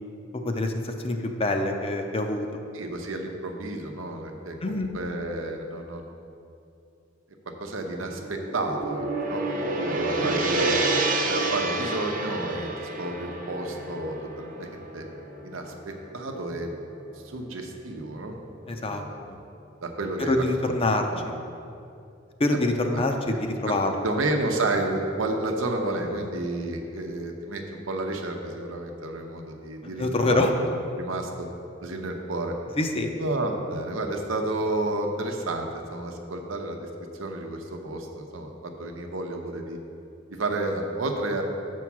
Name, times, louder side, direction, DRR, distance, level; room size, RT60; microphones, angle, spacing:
voice 1, 0.3-2.5 4.6-4.9 18.7-19.4 20.2-21.0 22.4-24.1 30.0-30.5 32.8-33.1, left 2 dB, 30° left, 4 dB, 0.5 m, -25 dB
voice 2, 2.7-6.2 7.6-9.4 9.7-10.8 11.3-15.1 15.4-16.7 17.2-18.4 18.7-19.2 19.8-20.7 21.1-21.4 22.5-22.6 22.9-23.0 23.3-30.7 30.9-31.5 31.8-32.5 33.2-36.9 37.2-39.8 40.3-41.4, right 2 dB, 90° right, 3 dB, 0.8 m, -31 dB
Gong, 8.0-16.4, right 2 dB, 45° right, 0.7 m, -29 dB
7.2 x 4.6 x 5.9 m, 2.6 s
head